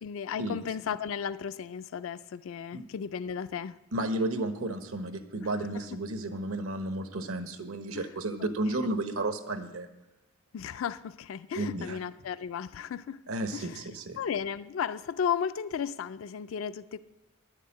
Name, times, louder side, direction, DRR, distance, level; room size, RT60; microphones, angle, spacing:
voice 1, 0.0-3.8 5.7-5.8 7.9-8.1 8.4-8.5 10.5-13.2 13.5-13.8 14.2-17.0, left 7 dB, 65° left, 14 dB, 0.4 m, -34 dB
voice 2, 3.9-9.9 11.6-12.0 13.3-14.2, right 2 dB, 80° right, 8 dB, 1.1 m, -33 dB
10.5 x 6.6 x 8.6 m, 0.99 s
head